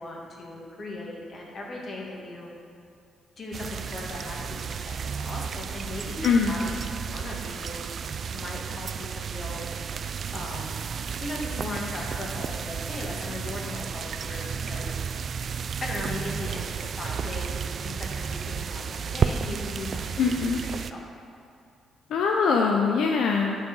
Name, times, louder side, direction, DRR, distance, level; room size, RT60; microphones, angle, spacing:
voice 1, 0.0-2.5 3.4-7.8 8.3-9.7 10.3-10.8 11.2-15.0 15.8-21.0, left 2 dB, 40° left, -2 dB, 2.0 m, -38 dB
sound 1, 3.5-20.9, right 6 dB, 50° right, 0.3 m, -32 dB
voice 2, 20.2-20.6 22.1-23.6, left 5 dB, 75° left, 1 dB, 0.6 m, -22 dB
10.5 x 4.7 x 5.4 m, 2.5 s
cardioid pair, 90°, 0 cm